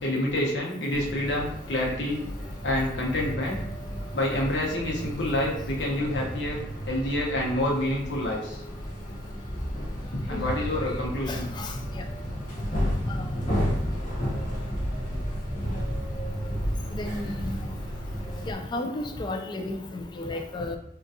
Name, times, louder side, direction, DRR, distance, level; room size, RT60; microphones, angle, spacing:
voice 1, 0.0-2.2 2.6-3.6 4.1-6.6 6.9-8.6 10.1-11.5, left 1 dB, 75° left, -3 dB, 0.9 m, -28 dB
sound 1, 0.9-18.5, equal, 45° left, 0.9 m, -32 dB
voice 2, 11.3-11.7 13.1-13.2 16.9-17.6 18.5-20.8, left 2 dB, 25° left, 5 dB, 0.3 m, -33 dB
3.8 x 2.3 x 2.7 m, 0.72 s
head